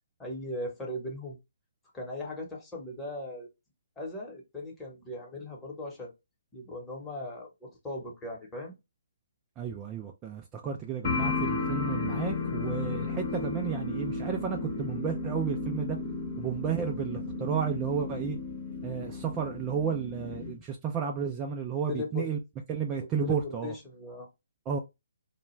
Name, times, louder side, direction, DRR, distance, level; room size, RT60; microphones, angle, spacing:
voice 1, 0.2-1.4 1.9-3.5 4.0-6.1 6.5-8.7 21.9-22.3 23.2-24.3, left 2 dB, 10° left, 0.9 m, -38 dB
voice 2, 9.6-16.0 16.4-18.4 18.8-22.4 22.7-23.7 24.7-24.8, right 7 dB, 20° right, 0.3 m, -32 dB
sound 1, 11.0-20.5, left 3 dB, 45° left, 0.9 m, -33 dB
2.3 x 2.2 x 3.0 m
hypercardioid pair, 145°, 0 cm